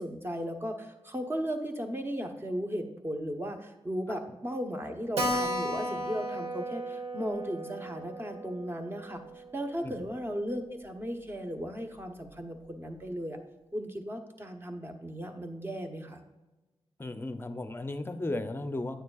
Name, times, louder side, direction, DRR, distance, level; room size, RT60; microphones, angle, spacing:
voice 1, 0.0-13.4 13.7-16.2, equal, 20° right, 5 dB, 0.9 m, -36 dB
Keyboard (musical), 5.2-10.2 10.5-10.6 10.9-11.0 11.2-11.3 11.9-12.2, equal, 85° right, 1.0 m, -35 dB
voice 2, 17.0-19.0, left 2 dB, 20° left, 9 dB, 0.6 m, -35 dB
9.3 x 8.9 x 2.4 m, 1.1 s
wide cardioid pair, 100°, 10 cm